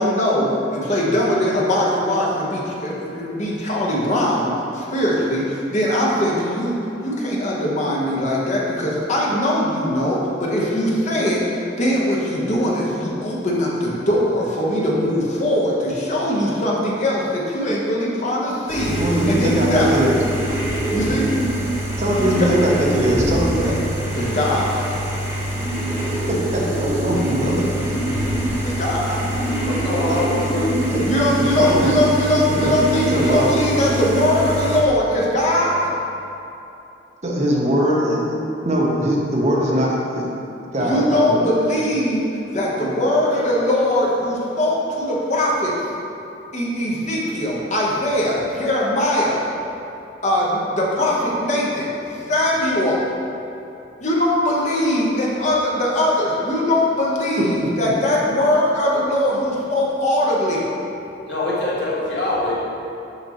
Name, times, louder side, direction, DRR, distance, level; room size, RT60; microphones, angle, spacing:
voice 1, 0.0-6.8 7.0-19.9 20.9-21.3 22.2-22.5 23.6-23.7 24.1-24.9 28.6-29.1 31.0-35.7 40.8-42.2 42.5-45.7 46.5-49.4 50.2-53.1 54.0-60.7, left 1 dB, 40° left, -4 dB, 1.0 m, -21 dB
sound 1, 18.7-34.8, right 1 dB, 15° right, 1.3 m, -24 dB
voice 2, 18.8-20.2 22.0-23.7 26.3-27.7 29.1-29.2 30.1-30.2 30.9-31.0 31.6-31.9 32.3-32.7 33.1-33.5 37.2-38.2 38.6-40.3 40.7-41.4, right 1 dB, 40° right, -3 dB, 0.8 m, -21 dB
voice 3, 29.7-30.7 61.3-62.6, left 2 dB, 70° left, -7 dB, 1.4 m, -23 dB
5.8 x 5.6 x 3.0 m, 2.8 s
head